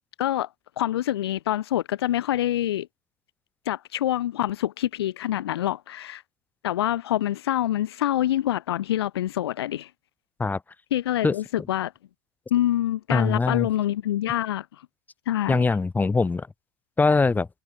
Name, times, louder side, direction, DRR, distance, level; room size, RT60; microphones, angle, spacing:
voice 1, 0.2-0.5 0.8-2.9 3.7-6.2 6.6-9.9 10.9-11.9 12.5-14.7 15.3-15.7, left 12 dB, 65° left, 0.6 m, -26 dB
voice 2, 13.1-13.7 15.5-16.5 17.0-17.5, left 4 dB, 10° left, 1.1 m, -22 dB
figure-of-eight pair, 80°, 14 cm